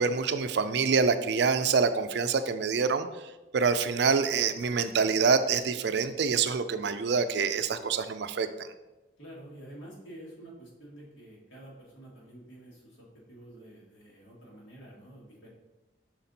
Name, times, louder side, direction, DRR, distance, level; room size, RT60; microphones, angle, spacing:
voice 1, 0.0-8.7, right 5 dB, 60° right, 11 dB, 0.4 m, -26 dB
voice 2, 9.2-15.5, right 1 dB, 80° left, -4 dB, 2.1 m, -49 dB
5.9 x 4.2 x 4.1 m, 1.1 s
head